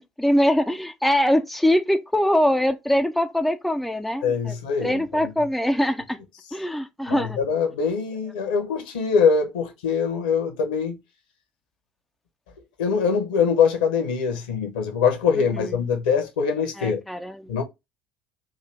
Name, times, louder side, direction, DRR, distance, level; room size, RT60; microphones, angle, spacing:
voice 1, 0.2-4.5 4.8-6.2 6.5-7.4 16.8-17.3, equal, ahead, 0.5 m, -22 dB
voice 2, 4.2-5.3 7.1-11.0 12.8-17.0 17.5-17.6, left 6 dB, 65° left, 1.0 m, -23 dB
3.8 x 2.7 x 3.4 m
figure-of-eight pair, 60°, 5 cm